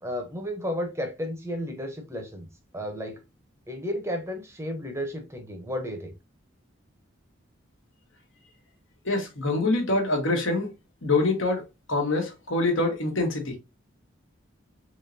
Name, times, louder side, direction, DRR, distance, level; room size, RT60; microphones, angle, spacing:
voice 1, 0.0-2.5 2.7-3.2 3.7-6.1, equal, 15° right, 0.6 m, -33 dB
voice 2, 9.0-10.7 11.0-11.6 11.9-13.6, left 2 dB, 80° left, 1.3 m, -25 dB
3.6 x 3.1 x 2.6 m
head